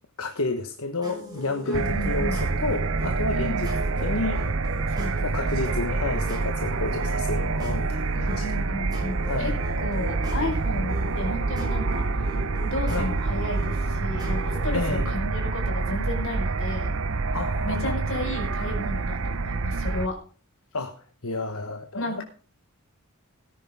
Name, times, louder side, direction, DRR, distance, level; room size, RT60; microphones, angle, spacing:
voice 1, 0.2-3.7 4.0-4.4 5.2-8.5 9.2-9.6 10.8-10.9 12.9-13.1 14.7-15.1 17.3-18.2 20.7-22.2, left 2 dB, 75° left, 6 dB, 1.4 m, -31 dB
sound 1, 1.0-14.9, left 1 dB, 20° right, 6.0 m, -40 dB
voice 2, 1.6-2.4 3.3-3.7 4.9-5.8 8.1-9.5 9.8-12.0 12.6-16.9 17.6-20.2 21.9-22.2, left 1 dB, 60° left, 2 dB, 4.8 m, -33 dB
sound 2, 1.7-20.1, right 3 dB, 60° right, 0.8 m, -27 dB
18.5 x 10.0 x 3.7 m, 0.41 s
head